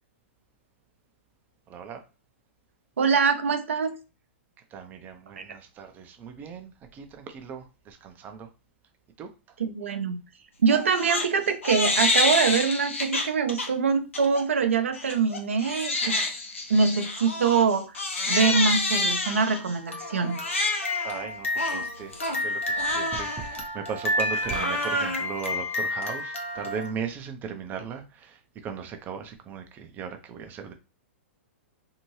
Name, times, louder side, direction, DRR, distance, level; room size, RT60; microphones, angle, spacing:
voice 1, 1.7-2.0 4.7-8.5 9.2-9.3 21.0-22.1 22.4-28.4 28.6-30.7, right 6 dB, 25° right, 0.5 m, -37 dB
voice 2, 3.0-4.0 5.4-5.5 9.6-10.2 10.6-16.2 16.7-17.9 18.3-20.4, right 5 dB, 80° right, 0.6 m, -24 dB
Crying sobbing, 10.7-11.3 11.6-13.7 14.1-14.4 14.9-26.9, left 2 dB, 85° left, 0.9 m, -28 dB
2.7 x 2.6 x 3.1 m
hypercardioid pair, 120°, 7 cm